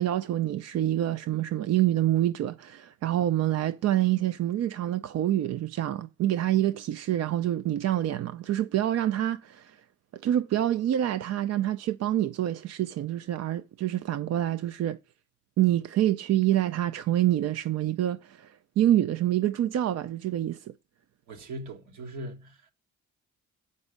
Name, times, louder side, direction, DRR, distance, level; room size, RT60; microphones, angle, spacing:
voice 1, 0.0-9.8 10.1-15.0 15.6-20.7, right 12 dB, 55° right, 0.5 m, -26 dB
voice 2, 21.3-22.7, right 1 dB, 75° right, 1.7 m, -40 dB
7.0 x 5.4 x 6.5 m
cardioid pair, 90°, 30 cm